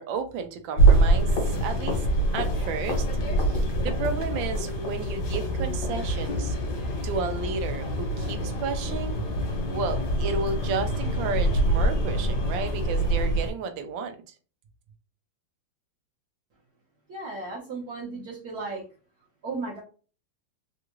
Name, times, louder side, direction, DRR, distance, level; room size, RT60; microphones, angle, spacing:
voice 1, 0.0-2.0 2.3-3.1 3.4-6.6 7.0-9.2 9.7-14.2, right 5 dB, 85° right, 1.4 m, -32 dB
sound 1, 0.8-13.5, right 1 dB, 65° left, 1.5 m, -25 dB
voice 2, 17.1-18.8 19.4-19.8, right 3 dB, 60° right, 1.4 m, -35 dB
3.5 x 2.4 x 3.0 m
omnidirectional pair, 2.0 m